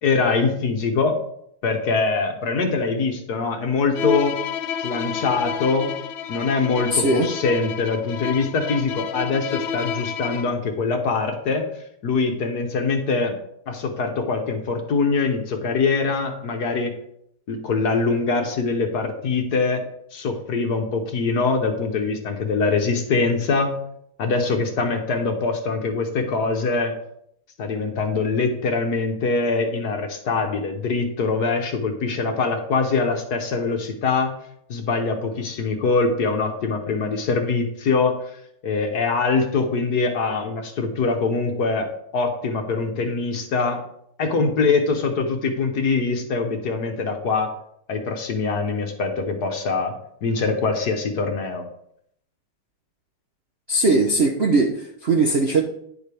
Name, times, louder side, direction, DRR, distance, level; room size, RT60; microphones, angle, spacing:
voice 1, 0.0-1.2 1.6-4.4 4.8-5.9 6.3-11.7 12.0-13.4 13.7-16.9 17.5-19.8 20.1-23.8 24.2-26.9 27.6-34.3 34.7-38.2 38.6-41.9 42.1-43.8 44.2-47.5 47.9-49.9 50.2-51.7, left 4 dB, 55° left, 4 dB, 1.3 m, -23 dB
Bowed string instrument, 3.9-10.6, left 7 dB, 75° left, 1.4 m, -30 dB
voice 2, 6.9-7.3 53.7-55.6, right 2 dB, 85° right, 3 dB, 0.5 m, -19 dB
10.5 x 7.1 x 3.4 m, 0.71 s
omnidirectional pair, 2.4 m